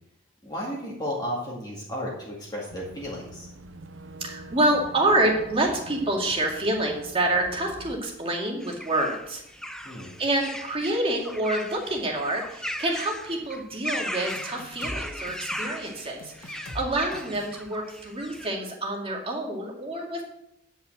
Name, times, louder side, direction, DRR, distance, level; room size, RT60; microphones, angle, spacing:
voice 1, 0.4-3.5 9.8-10.1, equal, 20° left, -5 dB, 2.2 m, -33 dB
Boat Water vehicle / Engine, 2.7-8.0, right 2 dB, 65° right, 0.8 m, -44 dB
voice 2, 4.2-9.4 10.2-20.2, right 1 dB, 30° right, 0 dB, 2.3 m, -27 dB
sound 1, 8.6-18.5, equal, 5° left, 0.7 m, -37 dB
sound 2, 14.3-15.0 15.3-15.6 16.2-16.8 17.1-17.5, left 1 dB, 85° left, 2.3 m, -40 dB
9.9 x 5.6 x 7.9 m, 0.80 s
head